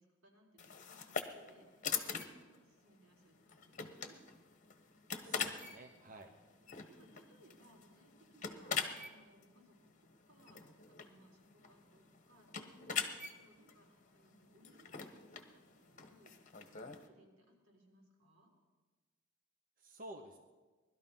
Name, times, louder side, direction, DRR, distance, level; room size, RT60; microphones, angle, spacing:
voice 1, 0.0-4.2 6.5-18.5, right 1 dB, 90° right, -1 dB, 4.1 m, -66 dB
sound 1, 0.6-17.1, left 6 dB, 40° left, 1.2 m, -44 dB
voice 2, 5.2-6.3 19.8-20.4, right 1 dB, 40° right, 4 dB, 1.0 m, -52 dB
19.5 x 12.5 x 5.6 m, 1.3 s
head